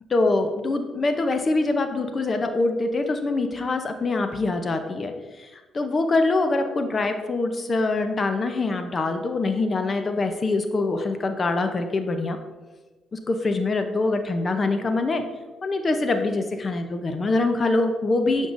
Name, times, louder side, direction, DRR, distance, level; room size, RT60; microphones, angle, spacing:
voice 1, 0.1-12.4 13.1-15.2 15.6-18.5, left 3 dB, 35° left, 7 dB, 0.6 m, -24 dB
7.7 x 5.3 x 2.5 m, 1.2 s
cardioid pair, 90°, 0 cm